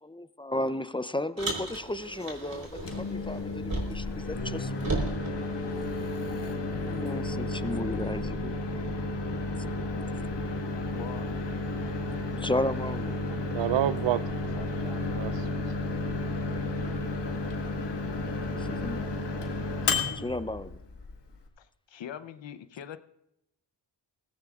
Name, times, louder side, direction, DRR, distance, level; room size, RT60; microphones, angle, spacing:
voice 1, 0.0-4.7 6.5-8.6 12.4-13.2 18.5-19.0 20.2-20.7, left 1 dB, 10° left, 0.5 m, -34 dB
Car, 1.4-4.2 4.4-6.3, right 2 dB, 50° right, 4.1 m, -35 dB
Microwave oven, 2.6-21.5, left 2 dB, 70° left, 1.7 m, -32 dB
voice 2, 10.9-11.3 14.6-14.9 18.5-19.0 21.6-23.0, left 9 dB, 85° left, 0.8 m, -43 dB
voice 3, 13.5-15.9, right 12 dB, 80° right, 0.5 m, -31 dB
19.5 x 16.5 x 2.4 m
cardioid pair, 50°, 44 cm